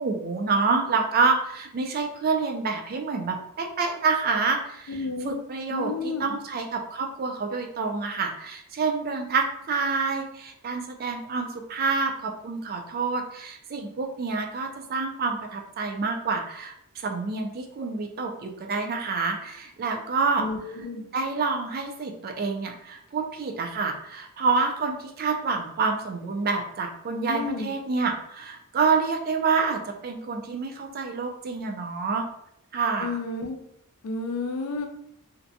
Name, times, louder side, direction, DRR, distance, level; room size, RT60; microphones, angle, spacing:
voice 1, 0.0-16.7 17.0-20.5 21.1-32.3 32.7-33.2, right 4 dB, 45° right, 3 dB, 0.4 m, -27 dB
voice 2, 4.9-5.4 5.7-6.4 20.4-21.0 27.3-27.7 33.0-33.6 34.0-34.9, left 3 dB, 70° left, 4 dB, 0.4 m, -31 dB
2.5 x 2.1 x 2.6 m, 0.72 s
head